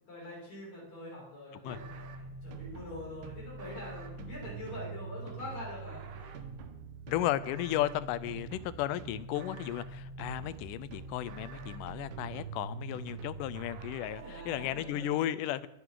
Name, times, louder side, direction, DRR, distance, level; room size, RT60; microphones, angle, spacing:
voice 1, 0.1-6.4 14.2-15.1, left 1 dB, 55° left, -5 dB, 7.3 m, -45 dB
sound 1, 1.7-14.8, right 4 dB, 70° right, 2.4 m, -44 dB
voice 2, 7.1-15.7, left 13 dB, 90° left, 16 dB, 2.2 m, -34 dB
23.5 x 9.4 x 3.8 m, 0.85 s
omnidirectional pair, 3.7 m